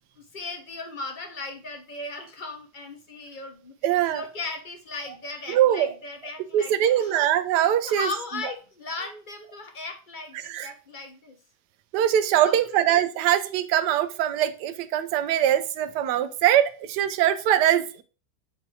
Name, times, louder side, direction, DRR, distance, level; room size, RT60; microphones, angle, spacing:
voice 1, 0.2-3.7 4.1-7.2 7.8-11.4 12.4-12.8, left 3 dB, 35° left, 5 dB, 0.9 m, -37 dB
voice 2, 3.8-4.2 5.5-5.9 6.5-8.1 10.5-10.7 11.9-18.0, right 11 dB, 80° right, 12 dB, 1.2 m, -22 dB
8.0 x 2.7 x 4.7 m, 0.36 s
omnidirectional pair, 1.9 m